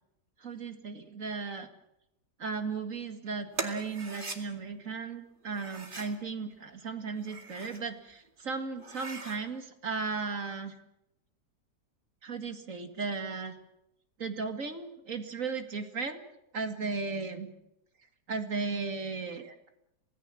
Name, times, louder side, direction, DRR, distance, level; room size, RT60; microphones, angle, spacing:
voice 1, 0.4-1.7 2.4-10.7 12.2-13.5 14.2-16.2 16.5-17.5 18.3-19.7, right 4 dB, 50° right, 7 dB, 2.4 m, -36 dB
sound 1, 3.5-4.4 5.5-6.2 7.1-7.8 8.3-8.4 8.8-9.4, right 3 dB, 30° right, 2.5 m, -40 dB
26.5 x 18.5 x 7.7 m, 0.84 s
omnidirectional pair, 1.8 m